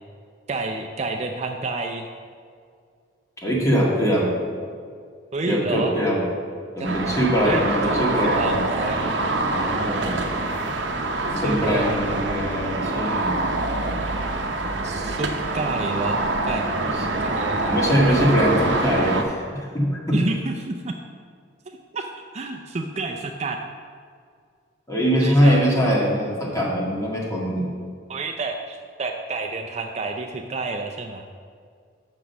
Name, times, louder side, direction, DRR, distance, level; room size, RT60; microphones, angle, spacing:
voice 1, 0.5-2.1 5.3-5.9 6.8-7.0 7.4-9.1 11.4-12.4 14.8-16.7 17.2-17.9 20.1-20.9 21.7-23.6 25.2-25.7 28.1-31.3, right 3 dB, 35° right, 3 dB, 0.5 m, -29 dB
voice 2, 3.4-4.3 5.5-6.2 6.8-8.6 9.4-10.2 11.3-13.3 16.8-17.1 17.6-20.2 24.9-27.7, equal, 15° left, -4 dB, 1.7 m, -22 dB
sound 1, 6.8-19.2, right 2 dB, 70° right, 0.8 m, -25 dB
6.2 x 6.1 x 6.9 m, 2.1 s
head